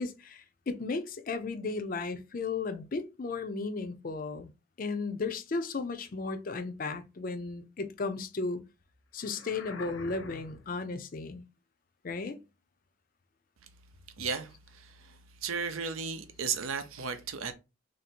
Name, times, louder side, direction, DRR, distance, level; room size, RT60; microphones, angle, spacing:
voice 1, 0.0-4.5 4.8-8.6 9.1-11.4 12.0-12.4, left 3 dB, 40° left, 0.4 m, -35 dB
sound 1, 9.2-10.8, left 4 dB, 80° left, 0.8 m, -46 dB
voice 2, 14.2-14.5 14.8-14.9 15.4-17.5, right 5 dB, 80° right, 0.6 m, -34 dB
3.2 x 2.7 x 4.2 m
head